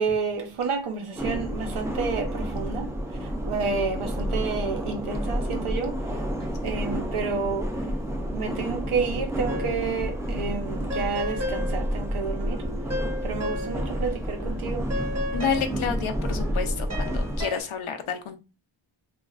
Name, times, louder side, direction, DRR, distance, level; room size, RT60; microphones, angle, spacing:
voice 1, 0.0-2.9 3.4-5.9 6.6-7.7 8.3-12.6 13.2-14.9, right 5 dB, 90° right, 0.8 m, -30 dB
sound 1, 1.2-17.4, equal, 5° right, 0.3 m, -30 dB
sound 2, 9.5-10.1 10.4-14.1 14.4-17.6, left 1 dB, 30° right, 1.0 m, -35 dB
voice 2, 15.3-18.4, left 6 dB, 75° left, 0.6 m, -29 dB
3.0 x 2.4 x 2.4 m
wide cardioid pair, 115°, 48 cm